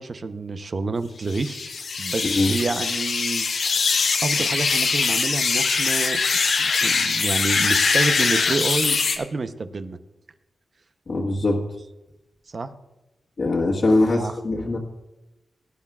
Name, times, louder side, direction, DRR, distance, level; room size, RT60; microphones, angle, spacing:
voice 1, 0.0-1.7 2.0-3.5 4.2-6.2 6.6-10.0 12.5-12.7 14.0-14.4, right 3 dB, 50° right, 10 dB, 0.8 m, -28 dB
sound 1, 1.3-9.2, left 4 dB, 75° left, 1.2 m, -22 dB
voice 2, 11.1-11.6 13.4-14.8, left 2 dB, 50° left, -3 dB, 1.6 m, -21 dB
18.0 x 10.5 x 2.4 m, 1.0 s
cardioid pair, 70°, 0 cm